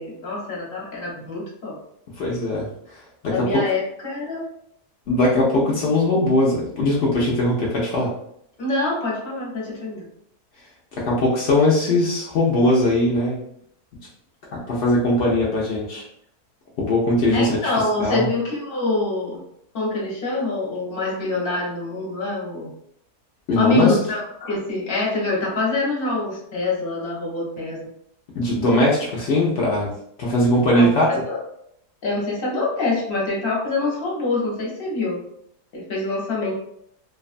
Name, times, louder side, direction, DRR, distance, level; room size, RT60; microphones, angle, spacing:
voice 1, 0.0-1.8 3.3-4.4 8.6-10.0 17.3-19.4 19.7-22.7 23.6-27.9 30.7-30.9 31.3-31.4 32.0-35.2 35.7-36.5, left 3 dB, 45° left, -4 dB, 0.9 m, -25 dB
voice 2, 2.2-3.6 5.1-8.1 11.0-13.4 14.5-16.0 16.8-17.6 18.0-18.3 23.5-24.0 28.3-29.9 30.2-31.1, left 1 dB, 75° left, -4 dB, 0.6 m, -20 dB
2.5 x 2.3 x 2.4 m, 0.71 s
omnidirectional pair, 1.7 m